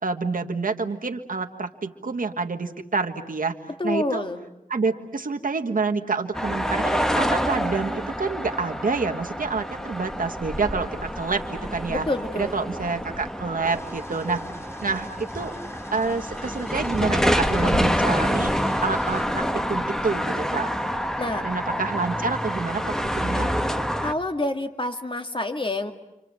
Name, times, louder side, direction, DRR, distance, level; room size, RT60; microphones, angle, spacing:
voice 1, 0.0-3.6 3.8-4.2 4.7-12.1 12.3-14.5 14.8-15.5 15.9-18.5 18.8-20.7 21.4-23.5, right 4 dB, 80° right, 3 dB, 1.5 m, -28 dB
voice 2, 3.8-4.4 11.9-12.5 21.2-21.4 24.0-25.9, left 2 dB, 35° left, 6 dB, 2.0 m, -27 dB
sound 1, 6.3-24.1, equal, 5° left, 1.3 m, -27 dB
sound 2, 13.6-19.2, equal, 20° left, 3.3 m, -43 dB
30.0 x 25.5 x 7.6 m, 0.88 s
wide cardioid pair, 60°, 14 cm